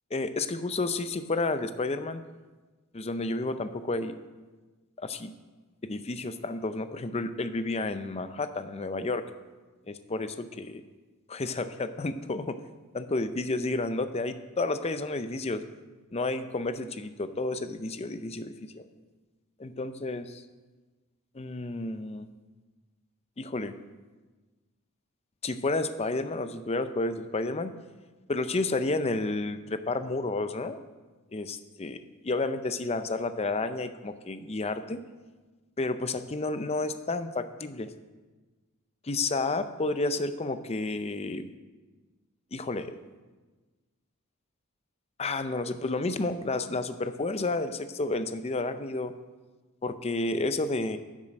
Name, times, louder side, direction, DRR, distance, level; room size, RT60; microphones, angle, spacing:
voice 1, 0.1-2.2 2.9-4.1 5.0-5.3 5.8-9.2 9.9-10.8 11.3-12.6 12.9-15.6 16.1-18.8 19.6-20.4 21.3-22.3 23.4-23.7 25.4-27.7 28.3-30.8 31.3-32.0 32.2-35.0 35.8-37.9 39.0-41.5 42.5-42.9 45.2-49.1 49.8-51.0, left 2 dB, 30° left, 10 dB, 0.5 m, -31 dB
10.0 x 7.5 x 6.5 m, 1.3 s
head